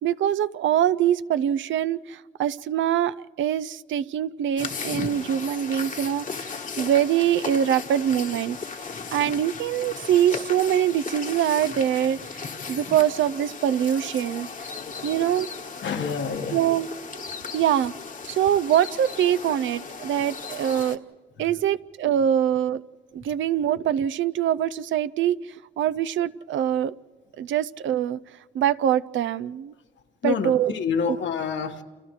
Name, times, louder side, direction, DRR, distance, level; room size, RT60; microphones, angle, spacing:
voice 1, 0.0-14.5 15.0-15.5 16.5-16.9 17.1-17.2 17.5-17.9 18.3-21.0 21.4-22.8 23.1-25.4 25.8-26.9 27.4-28.2 28.5-29.7 30.2-30.7 31.1-31.2, right 10 dB, 75° right, 15 dB, 0.5 m, -24 dB
sound 1, 4.6-21.0, left 5 dB, 40° left, 1.3 m, -36 dB
voice 2, 14.7-15.2 15.8-16.6 21.4-21.5 23.2-23.3 30.2-31.8, left 6 dB, 70° left, 5 dB, 1.5 m, -29 dB
29.5 x 29.0 x 3.2 m, 1.4 s
cardioid pair, 75°, 20 cm